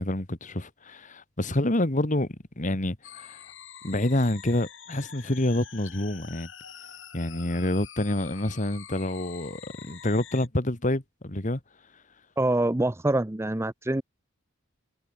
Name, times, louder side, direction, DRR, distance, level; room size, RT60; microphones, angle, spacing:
voice 1, 0.0-3.4 3.8-6.5 7.1-11.6, left 1 dB, 40° left, 2.0 m, -28 dB
sound 1, 3.0-10.5, left 8 dB, 65° left, 6.4 m, -46 dB
voice 2, 12.4-14.0, right 1 dB, 15° right, 0.6 m, -25 dB
head